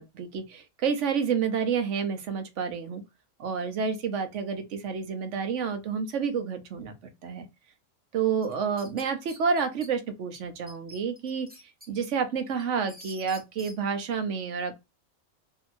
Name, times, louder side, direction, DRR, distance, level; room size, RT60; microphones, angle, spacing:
voice 1, 0.0-3.0 3.4-6.9 7.2-7.5 8.1-11.5 11.9-14.7, right 6 dB, 65° right, 1.1 m, -29 dB
sound 1, 8.4-9.9 10.3-10.4 10.7-11.9 12.3-13.8, equal, 10° right, 0.9 m, -48 dB
2.8 x 2.7 x 4.3 m
omnidirectional pair, 1.4 m